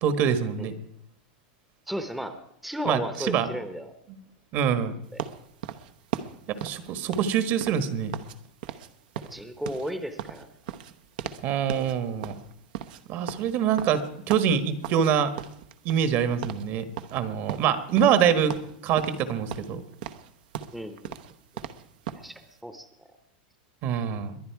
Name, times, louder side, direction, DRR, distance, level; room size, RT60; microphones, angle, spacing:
voice 1, 0.0-0.7 2.8-3.5 4.5-4.9 6.5-8.1 11.4-12.3 13.1-15.3 15.8-16.9 17.1-18.5 18.8-19.8 23.8-24.4, right 8 dB, 40° right, 11 dB, 1.4 m, -25 dB
voice 2, 1.9-2.4 2.6-3.9 5.1-5.2 9.3-10.8 18.0-18.3 20.7-21.1 22.2-23.1, equal, ahead, 8 dB, 0.9 m, -35 dB
sound 1, 5.2-8.4 8.6-8.9 9.1-11.4 11.7-11.9 12.2-15.1 15.4-16.2 16.4-16.7 17.0-18.2 18.5-19.2 19.5-22.3, right 10 dB, 65° right, 1.0 m, -37 dB
22.0 x 9.8 x 4.7 m, 0.73 s
supercardioid pair, 145°, 5 cm